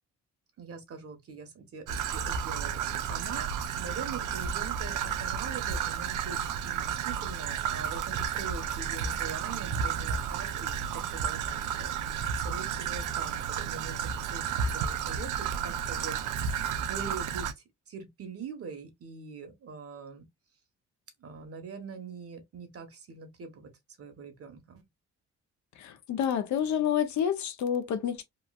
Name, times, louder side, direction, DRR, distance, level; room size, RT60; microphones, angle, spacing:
voice 1, 0.6-20.2 21.2-23.7 24.0-24.8, right 5 dB, 50° right, 1.1 m, -43 dB
Traffic noise roadway noise / Trickle dribble, 1.9-17.5, right 7 dB, 85° right, 0.5 m, -32 dB
voice 2, 25.8-28.2, left 9 dB, 70° left, 0.7 m, -28 dB
3.0 x 2.4 x 2.3 m
cardioid pair, 90°, 30 cm